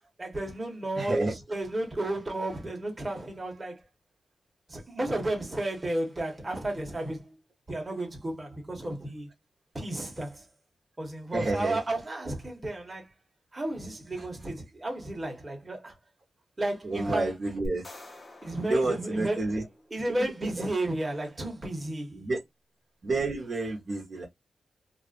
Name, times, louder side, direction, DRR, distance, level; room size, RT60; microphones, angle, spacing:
voice 1, 0.2-3.9 4.7-7.4 7.7-9.3 9.7-10.5 11.0-13.1 13.5-15.9 16.6-17.3 18.4-19.4 19.9-22.3, right 1 dB, 25° right, 1.3 m, -33 dB
voice 2, 1.0-1.3 2.1-2.2 11.3-11.8 14.2-14.3 16.8-17.9 18.6-19.7 20.1-20.7 22.1-22.4 23.0-24.2, right 2 dB, 50° right, 0.9 m, -30 dB
sound 1, 17.6-20.0, equal, 35° left, 1.0 m, -44 dB
2.5 x 2.3 x 2.4 m
cardioid pair, 65°, 0 cm